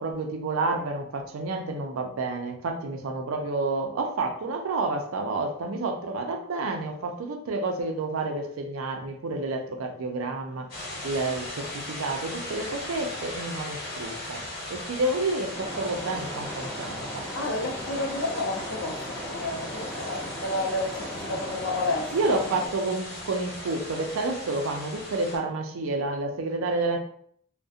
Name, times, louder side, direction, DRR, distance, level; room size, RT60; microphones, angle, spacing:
voice 1, 0.0-10.7 11.0-14.4 14.7-17.2 22.1-27.0, right 2 dB, 80° right, 0.4 m, -29 dB
sound 1, 10.7-25.4, left 1 dB, 50° left, 1.0 m, -38 dB
sound 2, 15.5-22.7, equal, 5° left, 0.4 m, -38 dB
voice 2, 17.3-22.4, left 2 dB, 65° left, 0.4 m, -31 dB
2.4 x 2.1 x 2.6 m
head